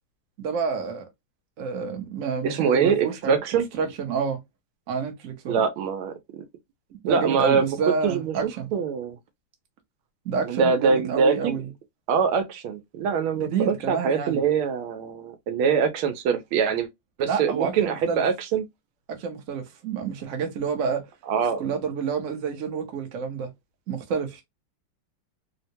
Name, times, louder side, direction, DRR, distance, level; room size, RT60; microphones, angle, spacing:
voice 1, 0.4-1.1 1.6-3.4 3.7-4.4 4.9-5.7 6.9-8.7 10.2-11.7 13.3-14.4 17.2-18.2 19.1-21.0 21.6-23.5 23.9-24.4, right 6 dB, 55° right, 0.9 m, -29 dB
voice 2, 2.4-3.7 5.5-6.4 7.0-7.8 8.0-9.2 10.4-11.6 12.1-16.9 17.2-18.6 21.3-21.7, right 6 dB, 85° right, 1.5 m, -24 dB
3.6 x 2.1 x 2.7 m
omnidirectional pair, 2.3 m